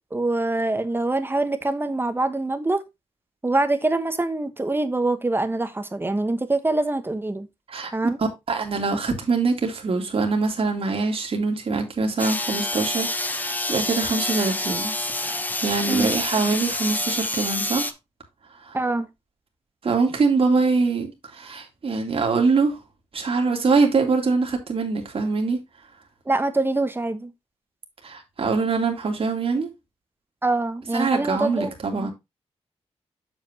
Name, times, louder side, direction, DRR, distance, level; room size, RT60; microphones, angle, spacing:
voice 1, 0.1-2.8 3.4-7.5 7.9-8.2 15.9-16.1 18.7-19.1 26.3-27.3 30.4-32.1, right 2 dB, 20° right, 1.1 m, -24 dB
voice 2, 8.2-17.9 18.6-18.8 19.8-22.8 23.1-25.6 28.0-29.7 30.9-32.1, right 4 dB, 55° right, 2.2 m, -24 dB
sound 1, 12.2-17.9, left 2 dB, 15° left, 0.8 m, -27 dB
7.8 x 6.9 x 2.9 m
cardioid pair, 95°, 12 cm